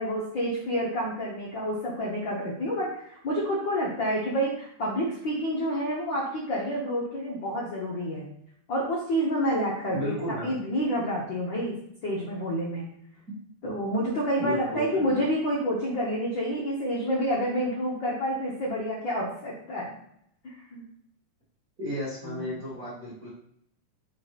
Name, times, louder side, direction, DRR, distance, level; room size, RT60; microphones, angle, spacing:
voice 1, 0.0-8.2 8.7-11.7 12.0-12.9 13.6-19.9 20.4-20.8 22.2-22.5, equal, 65° left, -4 dB, 1.1 m, -29 dB
voice 2, 9.9-10.5 14.4-15.1 21.8-23.3, left 1 dB, 30° right, -8 dB, 1.8 m, -33 dB
5.2 x 5.0 x 4.1 m, 0.74 s
omnidirectional pair, 3.7 m